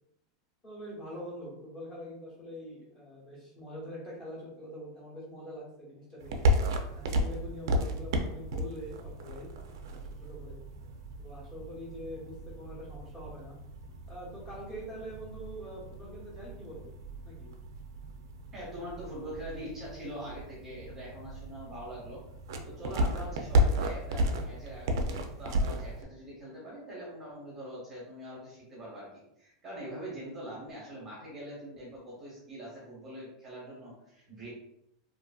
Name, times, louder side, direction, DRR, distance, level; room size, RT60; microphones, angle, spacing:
voice 1, 0.6-6.4 7.1-10.6 11.2-13.6 14.1-16.9 17.2-17.5, equal, 20° left, -7 dB, 0.9 m, -44 dB
sound 1, 6.2-26.0, equal, 75° right, 0.4 m, -33 dB
voice 2, 18.5-22.2 22.6-29.1 29.4-34.5, equal, 15° right, -6 dB, 0.7 m, -43 dB
2.5 x 2.5 x 2.3 m, 0.79 s
supercardioid pair, 175°, 2 cm